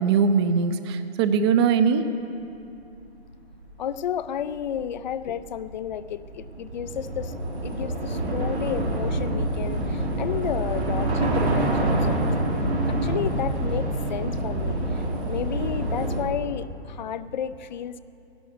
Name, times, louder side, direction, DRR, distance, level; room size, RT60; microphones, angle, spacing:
voice 1, 0.0-2.0, right 6 dB, 25° right, 0.6 m, -21 dB
Train / Subway metro underground, 2.9-3.0 3.2-16.2, right 1 dB, 85° right, 3.6 m, -27 dB
voice 2, 3.8-7.3 7.6-12.2 12.9-18.0, left 9 dB, 45° left, 0.5 m, -32 dB
16.0 x 11.5 x 6.5 m
hypercardioid pair, 140°, 32 cm